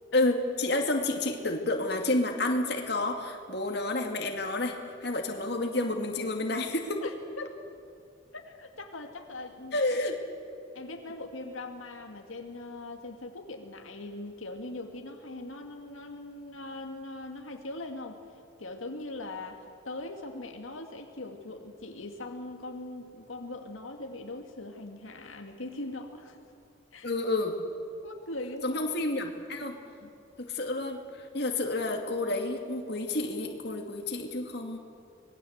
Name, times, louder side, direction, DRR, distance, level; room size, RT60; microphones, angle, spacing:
voice 1, 0.1-7.0 9.7-10.2 27.0-27.6 28.6-29.8 30.4-34.8, left 2 dB, 55° left, 3 dB, 2.3 m, -30 dB
voice 2, 7.0-7.6 8.3-9.8 10.7-18.2 18.6-26.4 26.9-27.1 28.0-28.8 30.0-30.1, left 2 dB, 90° left, 3 dB, 2.1 m, -41 dB
25.5 x 20.0 x 8.0 m, 2.4 s
head